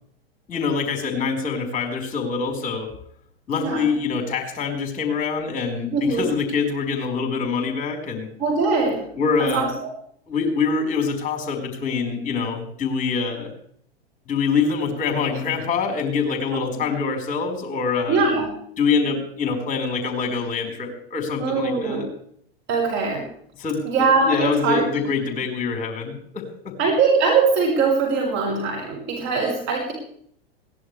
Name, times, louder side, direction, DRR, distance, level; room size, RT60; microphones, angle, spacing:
voice 1, 0.5-2.9 3.5-8.3 9.1-9.7 10.3-13.5 14.3-18.2 18.8-22.0 23.6-26.7, left 5 dB, 25° left, 4 dB, 4.9 m, -25 dB
voice 2, 5.9-6.3 8.4-9.0 9.4-9.9 16.5-16.6 18.1-18.5 21.4-22.1 22.7-23.3 23.8-24.8 26.8-29.9, right 4 dB, 35° right, -2 dB, 7.1 m, -21 dB
22.0 x 17.5 x 3.4 m, 0.64 s
figure-of-eight pair, 95°, 30 cm